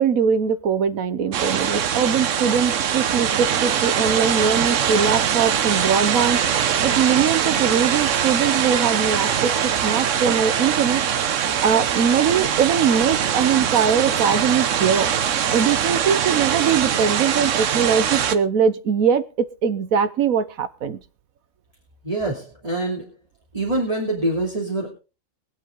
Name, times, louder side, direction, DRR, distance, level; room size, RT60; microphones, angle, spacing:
voice 1, 0.0-6.4 6.8-11.0 11.4-15.1 15.5-21.0, right 7 dB, 85° right, 13 dB, 1.4 m, -21 dB
sound 1, 1.3-18.4, right 8 dB, 70° right, 1.2 m, -22 dB
voice 2, 22.0-23.0 23.5-24.9, right 2 dB, 25° right, -3 dB, 3.0 m, -25 dB
22.5 x 8.0 x 3.7 m, 0.33 s
omnidirectional pair, 1.4 m